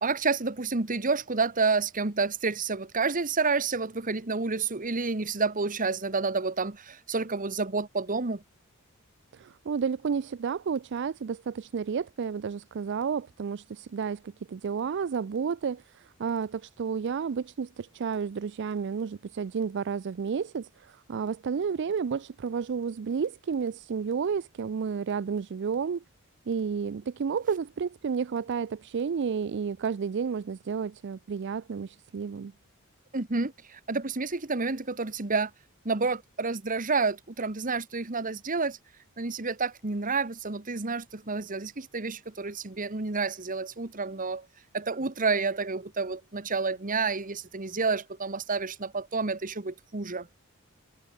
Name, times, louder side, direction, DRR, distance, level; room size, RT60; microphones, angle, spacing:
voice 1, 0.0-8.4 33.1-35.5 35.8-38.8 39.2-44.4 44.7-50.3, right 4 dB, 40° right, 1.3 m, -29 dB
voice 2, 9.3-26.0 26.5-32.5, right 6 dB, 55° right, 0.4 m, -31 dB
head